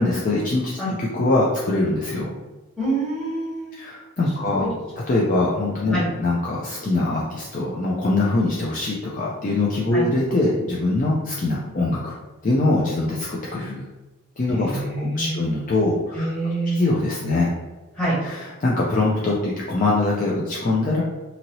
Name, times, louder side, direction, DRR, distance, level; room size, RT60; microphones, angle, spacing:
voice 1, 0.0-2.3 3.7-4.6 5.1-12.1 12.4-13.8 14.4-16.3 16.7-17.5 18.2-21.0, left 2 dB, 40° left, -5 dB, 0.4 m, -23 dB
voice 2, 2.8-3.8 4.5-4.7 5.9-6.0 9.9-10.0 14.5-15.4 16.1-16.8 17.9-18.1, right 1 dB, 5° left, -10 dB, 1.2 m, -26 dB
2.7 x 2.7 x 2.9 m, 1.2 s
head